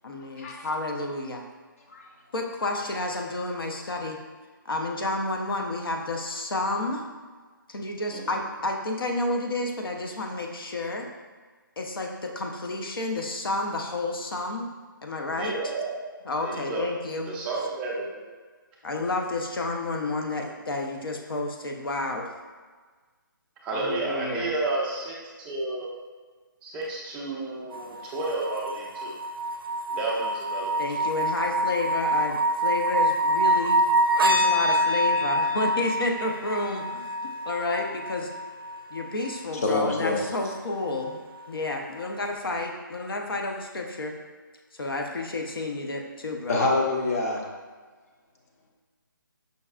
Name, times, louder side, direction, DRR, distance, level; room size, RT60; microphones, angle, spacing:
voice 1, 0.0-1.5 2.3-4.2 4.7-7.0 7.7-11.1 11.8-14.7 15.0-15.5 16.2-17.3 18.8-22.3 23.7-24.5 30.8-33.8 34.2-38.3 38.9-41.2 41.5-44.2 44.7-46.6, left 2 dB, 85° left, 2 dB, 0.6 m, -30 dB
voice 2, 15.4-16.0 16.4-16.9 17.3-18.3 23.6-25.9 26.6-29.1 29.9-30.7 31.0-31.1, right 2 dB, 10° right, -4 dB, 0.3 m, -31 dB
sound 1, 27.7-39.7 41.1-41.2, right 1 dB, 90° right, 0.4 m, -26 dB
voice 3, 39.6-40.2 46.5-47.4, left 3 dB, 45° left, -1 dB, 0.6 m, -25 dB
5.3 x 2.3 x 2.3 m, 1.4 s
hypercardioid pair, 155°, 12 cm